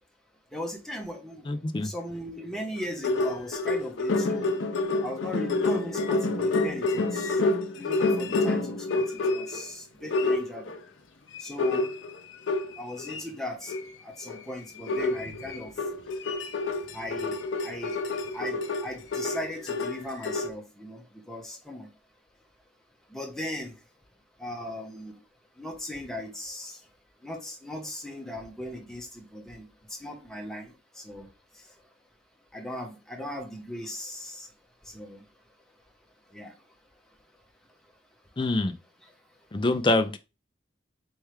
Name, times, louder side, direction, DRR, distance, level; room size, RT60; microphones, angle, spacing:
voice 1, 0.5-1.4 1.8-4.5 5.0-7.4 7.8-10.7 11.4-11.9 12.8-13.7 14.0-15.7 16.9-18.0 18.3-21.9 23.1-23.7 24.4-25.1 25.6-26.8 27.2-31.3 32.5-34.5 34.9-35.2 36.3-36.5, left 1 dB, ahead, 1.1 m, -38 dB
voice 2, 1.5-1.9 38.4-38.7 39.5-40.2, left 2 dB, 25° left, 0.4 m, -25 dB
sound 1, 2.8-9.7 10.1-10.8 11.3-13.2 13.6-13.9 14.2-14.4 14.9-20.5, left 3 dB, 85° left, 0.6 m, -28 dB
4.4 x 3.4 x 3.2 m
head